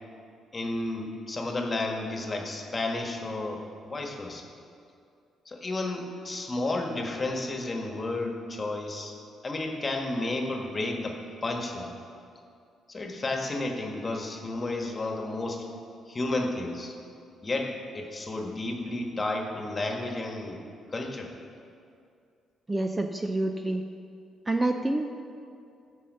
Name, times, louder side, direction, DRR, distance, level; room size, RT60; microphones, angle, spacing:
voice 1, 0.5-4.5 5.4-9.1 9.4-12.0 12.9-15.7 16.1-17.0 17.4-20.6 20.9-21.3, left 2 dB, 30° left, 2 dB, 1.5 m, -32 dB
voice 2, 22.7-23.8 24.5-25.1, right 2 dB, 15° right, 5 dB, 0.6 m, -27 dB
15.0 x 5.7 x 5.5 m, 2.4 s
cardioid pair, 90°, 0 cm